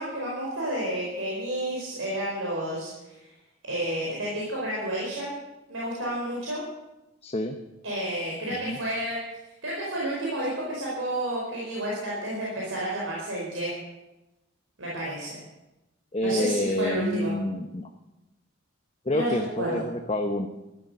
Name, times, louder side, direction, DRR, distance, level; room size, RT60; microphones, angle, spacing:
voice 1, 0.0-2.9 3.6-5.3 5.7-6.6 7.8-9.2 9.6-13.8 14.8-15.4 16.2-17.3 19.1-19.8, right 1 dB, 75° right, -5 dB, 4.8 m, -30 dB
voice 2, 7.2-7.6 8.5-8.8 16.1-17.9 19.0-20.5, left 1 dB, 30° left, 4 dB, 0.9 m, -28 dB
13.5 x 12.5 x 7.9 m, 0.99 s
head